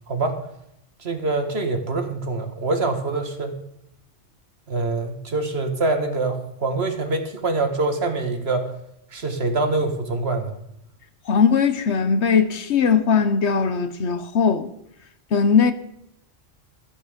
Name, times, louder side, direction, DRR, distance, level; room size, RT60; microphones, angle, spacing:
voice 1, 0.1-0.4 1.0-3.5 4.7-8.7 9.1-10.6, right 3 dB, 60° right, 1.9 m, -25 dB
voice 2, 11.3-14.7 15.3-15.7, left 6 dB, 65° left, 1.2 m, -19 dB
13.5 x 11.0 x 5.1 m
omnidirectional pair, 1.2 m